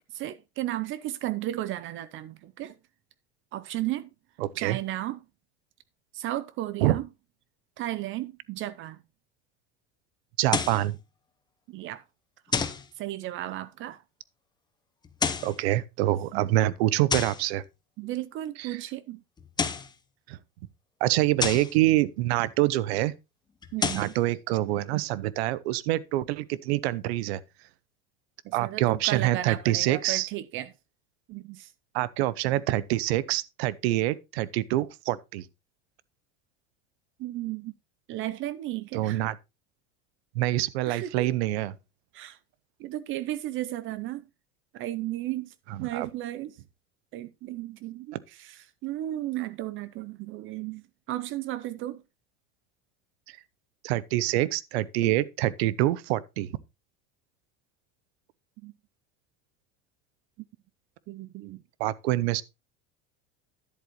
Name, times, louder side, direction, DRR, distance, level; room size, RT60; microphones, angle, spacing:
voice 1, 0.1-2.8 3.5-4.1 4.6-5.2 6.1-7.1 7.8-9.0 11.7-12.0 13.0-14.0 16.3-16.5 18.0-19.2 23.7-24.1 28.4-30.7 31.3-31.7 37.2-37.7 38.1-39.2 40.9-41.3 42.1-42.4 42.8-44.3 44.7-45.5 45.8-46.6 47.1-52.0 58.6-58.7 61.1-61.6, right 14 dB, 40° right, 0.5 m, -34 dB
voice 2, 4.4-4.8 6.8-7.0 10.4-11.0 15.4-17.6 18.6-18.8 20.3-20.4 21.0-23.1 24.0-27.4 28.5-30.3 31.9-35.5 38.9-39.4 40.3-41.7 45.7-46.1 48.1-48.2 53.8-56.5 61.8-62.4, right 15 dB, 85° right, 0.8 m, -26 dB
sound 1, 10.5-10.9 12.5-12.9 15.0-15.6 17.1-17.5 19.4-19.9 21.4-21.7 23.6-24.1, left 5 dB, 15° left, 0.7 m, -29 dB
10.5 x 7.9 x 3.1 m
supercardioid pair, 140°, 31 cm